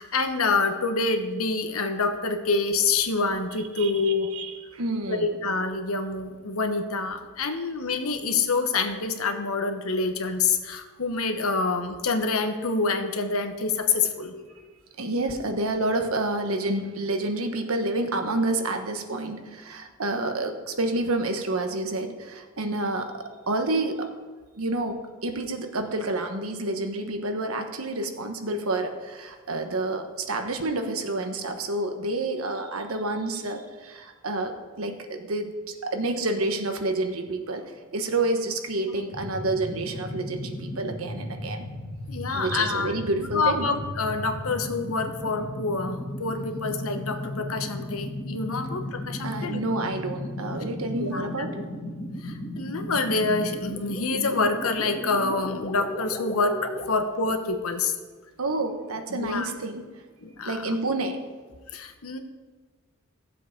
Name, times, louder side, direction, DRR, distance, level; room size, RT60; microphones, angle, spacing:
voice 1, 0.0-4.3 5.1-14.4 20.1-20.3 38.9-39.0 42.1-42.9 43.3-49.6 51.0-51.3 52.2-57.9 59.1-59.5 60.2-60.8 61.7-62.2, left 3 dB, 90° left, 7 dB, 1.1 m, -27 dB
voice 2, 3.8-5.4 15.0-24.1 24.6-35.6 35.8-37.6 37.9-41.7 42.3-43.7 49.2-51.6 58.4-59.8 60.4-61.2, right 2 dB, 90° right, 5 dB, 1.2 m, -29 dB
sound 1, 39.1-56.9, left 1 dB, 30° left, 1.4 m, -35 dB
15.0 x 7.6 x 5.2 m, 1.4 s
head